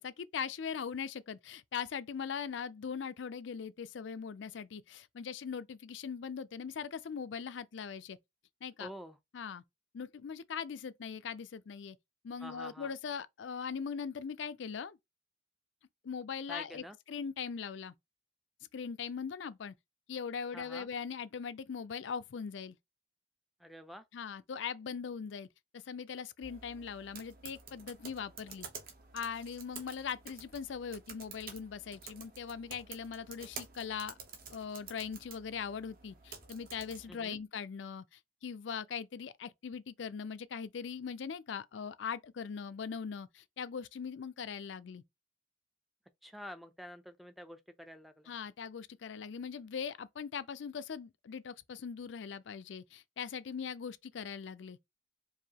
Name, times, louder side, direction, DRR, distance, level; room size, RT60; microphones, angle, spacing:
voice 1, 0.0-8.2 8.6-8.9 9.3-9.6 9.9-12.0 12.2-15.0 16.0-17.9 18.7-19.7 20.1-22.8 24.1-25.5 25.7-28.7 29.1-34.2 34.5-45.0 48.3-54.8, left 6 dB, 80° left, 0.4 m, -40 dB
voice 2, 8.8-9.2 12.4-12.9 16.5-17.0 20.5-20.9 23.6-24.0 37.1-37.4 46.2-48.3, equal, ahead, 0.4 m, -48 dB
sound 1, 26.4-37.1, right 5 dB, 50° right, 1.0 m, -50 dB
4.7 x 2.6 x 2.8 m
head